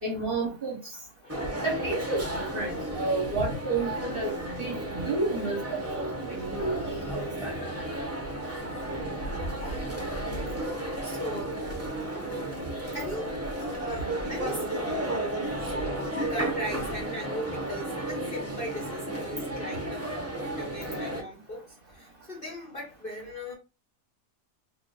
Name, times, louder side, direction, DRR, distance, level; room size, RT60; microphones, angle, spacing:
voice 1, 0.0-0.8 1.6-7.5, right 2 dB, 40° right, 0.9 m, -31 dB
sound 1, 1.3-21.2, right 1 dB, 15° right, 0.5 m, -33 dB
voice 2, 9.1-9.8 10.4-10.6 11.0-11.8 12.9-15.1 15.6-23.6, equal, 40° left, 0.9 m, -39 dB
2.9 x 2.5 x 3.8 m
omnidirectional pair, 1.7 m